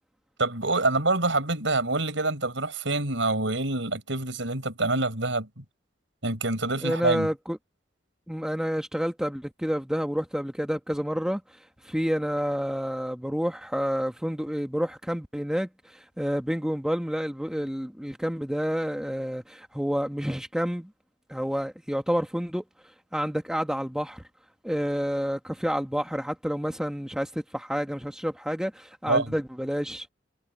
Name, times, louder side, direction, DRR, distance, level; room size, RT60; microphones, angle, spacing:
voice 1, 0.4-5.6 6.2-7.3 29.1-29.4, right 2 dB, 80° right, 5.7 m, -26 dB
voice 2, 6.8-7.6 8.3-11.4 11.8-20.9 21.3-22.6 23.1-24.2 24.6-30.1, equal, 5° right, 1.2 m, -29 dB
head